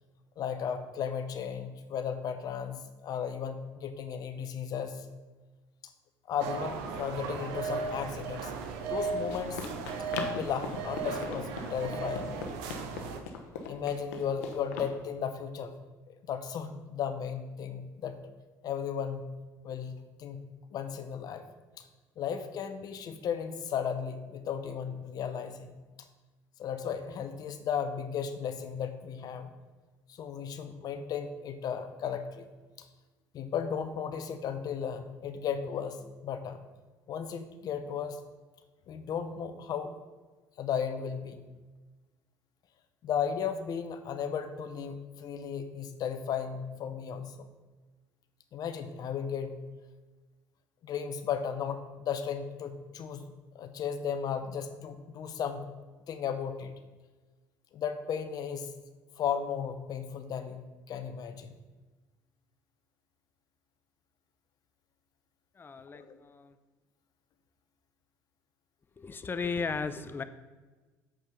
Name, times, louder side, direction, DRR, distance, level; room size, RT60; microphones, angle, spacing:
voice 1, 0.4-5.1 6.3-8.5 8.9-9.6 10.3-12.6 13.7-15.7 16.1-18.2 18.6-19.3 19.6-20.4 20.7-21.4 21.8-21.9 22.2-25.7 26.6-29.5 30.1-32.5 32.8-32.9 33.3-36.6 37.1-38.2 38.9-39.9 40.6-41.4 43.0-47.5 48.5-49.6 50.8-53.2 53.5-55.7 56.1-56.7 57.7-58.7 59.2-61.5 65.9-66.2, left 7 dB, 55° left, 9 dB, 0.9 m, -35 dB
sound 1, 6.4-13.2, right 4 dB, 75° right, 0.9 m, -36 dB
Run, 8.7-14.9, left 5 dB, 80° left, 1.0 m, -41 dB
voice 2, 65.6-66.5 69.0-70.2, left 4 dB, 25° left, 12 dB, 0.6 m, -35 dB
7.4 x 5.4 x 5.1 m, 1.3 s
supercardioid pair, 75°, 8 cm